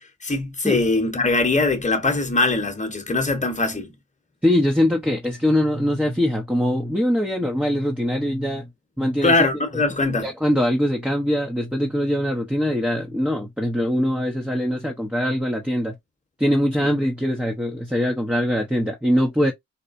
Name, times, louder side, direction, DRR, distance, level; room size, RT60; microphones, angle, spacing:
voice 1, 0.2-3.9 9.2-10.3, left 3 dB, 20° left, 1.1 m, -21 dB
voice 2, 4.4-8.7 9.0-9.3 10.2-15.9 16.4-19.5, equal, 5° right, 0.7 m, -22 dB
4.3 x 2.1 x 2.6 m
cardioid pair, 60°, 33 cm